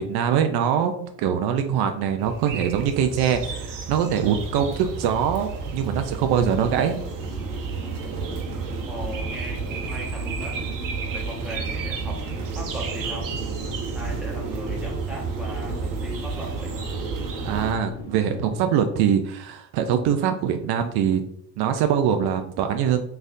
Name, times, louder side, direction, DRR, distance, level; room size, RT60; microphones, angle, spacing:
voice 1, 0.0-7.0 17.4-21.2 21.6-23.0, right 8 dB, 65° right, 7 dB, 0.5 m, -23 dB
sound 1, 2.2-17.7, right 4 dB, 50° right, 0.9 m, -31 dB
sound 2, 6.3-18.6, equal, 15° left, 1.5 m, -40 dB
voice 2, 8.9-10.6 11.1-13.3 13.9-16.7, right 1 dB, ahead, -4 dB, 1.3 m, -38 dB
4.2 x 3.4 x 2.5 m, 0.72 s
cardioid pair, 120°, 41 cm